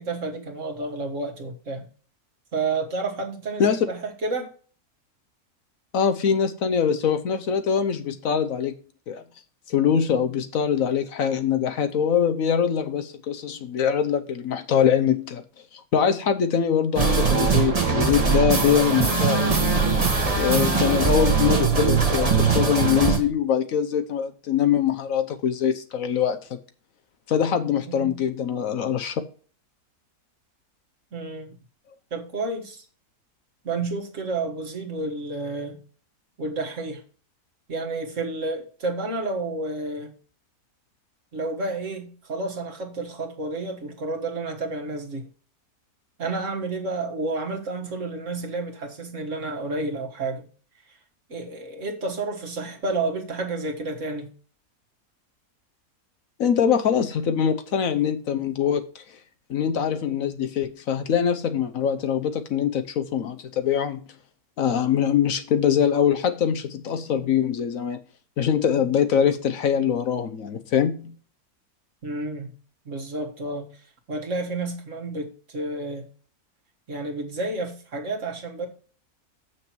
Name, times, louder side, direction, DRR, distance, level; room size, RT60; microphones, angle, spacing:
voice 1, 0.0-1.9 2.5-4.5 27.9-28.2 31.1-31.6 32.1-32.9 33.6-35.8 36.4-37.0 37.7-40.1 41.3-45.3 46.2-50.5 51.3-54.3 72.0-72.5 72.9-73.7 74.1-76.1 76.9-78.7, right 3 dB, 55° right, 1.9 m, -30 dB
voice 2, 5.9-8.7 9.1-9.2 9.7-15.4 15.7-19.7 20.4-26.6 27.3-29.2 56.4-59.0 59.5-64.0 64.6-68.0 68.4-71.1, left 8 dB, 65° left, 1.2 m, -23 dB
sound 1, 16.9-23.2, right 5 dB, 25° right, 1.3 m, -21 dB
7.7 x 6.1 x 4.4 m
omnidirectional pair, 1.6 m